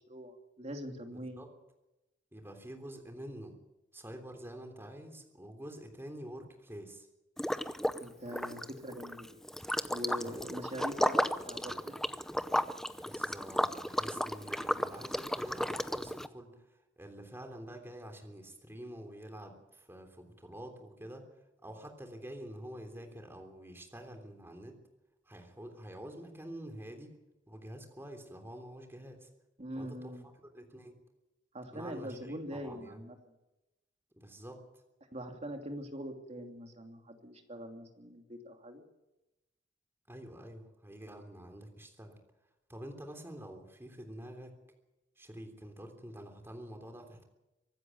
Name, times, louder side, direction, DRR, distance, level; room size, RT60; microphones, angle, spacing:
voice 1, 0.0-1.4 8.0-9.3 9.9-11.9 29.6-30.2 31.5-33.1 35.1-38.8, equal, 35° right, 4 dB, 2.9 m, -43 dB
voice 2, 1.1-1.5 2.3-3.5 3.9-7.1 10.2-10.5 13.0-21.3 21.6-24.8 25.3-27.1 27.5-29.3 29.8-30.1 30.5-30.9 31.7-33.1 34.2-34.8 40.1-42.2 42.7-44.5 45.2-47.2, right 1 dB, 15° right, 4 dB, 3.3 m, -47 dB
Liquid, 7.4-8.0 8.3-16.3, equal, ahead, 0.7 m, -34 dB
24.5 x 13.0 x 9.4 m, 0.98 s
head